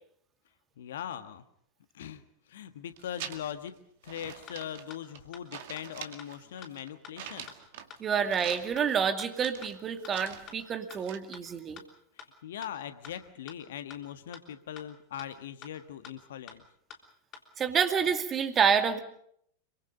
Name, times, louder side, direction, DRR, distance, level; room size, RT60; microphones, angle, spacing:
voice 1, 0.8-1.4 1.9-2.2 2.5-3.8 4.0-7.5 12.2-16.6, left 10 dB, 60° left, 10 dB, 1.5 m, -40 dB
sound 1, 2.9-3.7 4.0-5.3 5.5-8.0 8.2-9.0 9.3-10.6 10.9-11.2, right 9 dB, 50° right, 2.1 m, -45 dB
sound 2, 4.1-4.2 4.5-4.6 4.9-5.0 5.3-5.4 5.8-5.9 6.2-6.3 6.6-6.7 7.0-7.1 7.5-7.6 7.9-8.0 8.3-8.4 8.8-8.9 9.2-9.3 9.6-9.7 10.0-10.1 10.5-10.6 10.9-11.0 11.3-11.4 11.8-11.9 12.2-12.3 12.6-12.7 13.0-13.1 13.5-13.6 13.9-14.0 14.3-14.4 14.8-14.9 15.2-15.3 15.6-15.7 16.0-16.1 16.5-16.6 16.9-17.0 17.3-17.4 17.8-17.9, left 7 dB, 35° left, 3.4 m, -46 dB
voice 2, 8.0-11.8 17.6-19.0, right 7 dB, 25° right, 7 dB, 2.3 m, -28 dB
27.0 x 24.0 x 5.2 m, 0.68 s
figure-of-eight pair, 90°, 0 cm